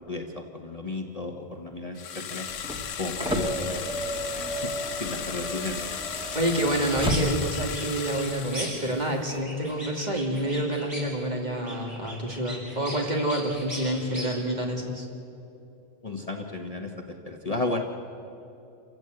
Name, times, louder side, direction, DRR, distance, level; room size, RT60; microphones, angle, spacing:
voice 1, 0.0-2.5 3.0-3.8 4.5-4.7 5.0-5.8 12.5-12.7 16.0-16.9 17.2-17.8, left 2 dB, 30° left, 2 dB, 1.2 m, -33 dB
sound 1, 2.0-9.3, left 8 dB, 75° left, 1.2 m, -36 dB
sound 2, 2.5-7.6 8.8-8.9, equal, 5° right, 1.8 m, -32 dB
voice 2, 6.3-15.1, right 1 dB, 35° right, 0 dB, 2.6 m, -28 dB
sound 3, 6.6-7.2 7.5-9.0 9.3-11.2 11.5-14.3, equal, 50° right, 8.0 m, -39 dB
28.0 x 15.5 x 7.8 m, 2.8 s
omnidirectional pair, 1.3 m